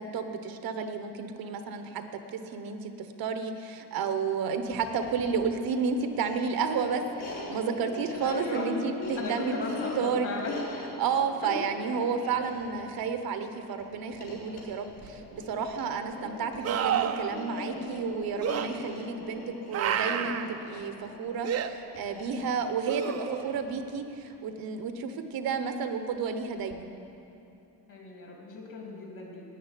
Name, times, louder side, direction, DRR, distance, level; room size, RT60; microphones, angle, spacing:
voice 1, 0.0-2.0 2.3-9.6 10.0-10.3 11.0-19.4 19.7-26.9, right 5 dB, 60° right, 7 dB, 1.0 m, -31 dB
sound 1, 4.6-23.9, left 2 dB, 75° left, 4.0 m, -43 dB
voice 2, 8.2-8.7 9.2-10.5 11.4-11.6 27.9-29.4, left 2 dB, 50° left, -1 dB, 3.2 m, -36 dB
sound 2, 15.0-15.1 16.6-17.3 18.4-18.7 19.7-20.5 21.4-21.7 22.9-23.6 26.7-26.8, right 9 dB, 40° right, 0.6 m, -29 dB
10.0 x 8.9 x 9.9 m, 2.8 s
cardioid pair, 160°, 40 cm